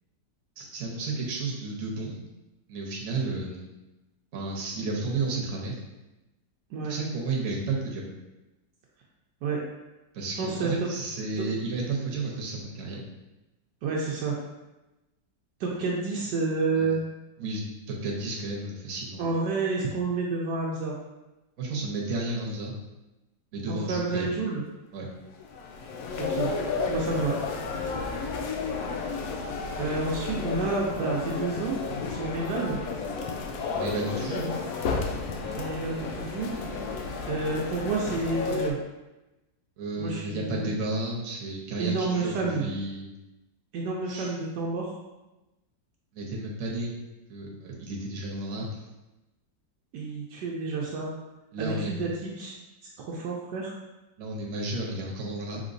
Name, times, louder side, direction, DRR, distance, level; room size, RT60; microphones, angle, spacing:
voice 1, 0.6-2.2 2.7-3.7 4.3-5.8 6.8-8.1 10.1-13.0 16.7-16.9 17.4-17.6 17.9-19.2 21.6-22.7 23.5-24.3 24.9-25.1 33.7-34.6 39.8-43.0 44.1-44.3 46.1-46.9 47.3-48.8 51.5-52.1 54.2-55.6, right 2 dB, 60° right, -2 dB, 1.2 m, -32 dB
voice 2, 10.4-10.9 13.8-14.4 15.6-17.0 19.2-20.9 23.7-24.6 26.2-26.5 26.9-27.4 29.8-31.8 32.1-32.8 35.5-36.5 37.3-38.8 40.0-40.7 41.8-42.7 43.7-44.9 49.9-51.1 51.6-52.6 52.8-53.7, right 3 dB, 75° right, -2 dB, 1.2 m, -29 dB
sound 1, 25.3-38.7, left 4 dB, 70° left, 0.9 m, -32 dB
5.0 x 3.5 x 2.6 m, 1.0 s
omnidirectional pair, 1.8 m